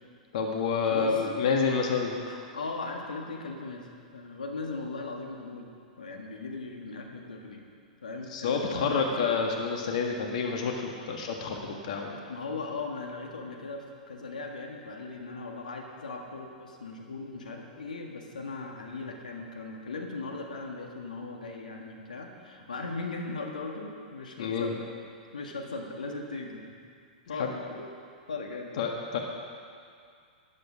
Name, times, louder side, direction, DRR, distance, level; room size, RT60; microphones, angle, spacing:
voice 1, 0.3-2.1 8.3-12.2 24.4-24.7 27.4-27.5 28.8-29.2, left 5 dB, 60° left, 1 dB, 1.6 m, -28 dB
voice 2, 0.9-1.2 2.3-5.7 6.0-7.6 8.0-9.4 12.3-24.8 25.3-26.7 27.3-27.5 28.3-28.8, left 3 dB, 80° left, 1 dB, 1.8 m, -38 dB
13.5 x 11.0 x 6.4 m, 2.3 s
hypercardioid pair, 110°, 4 cm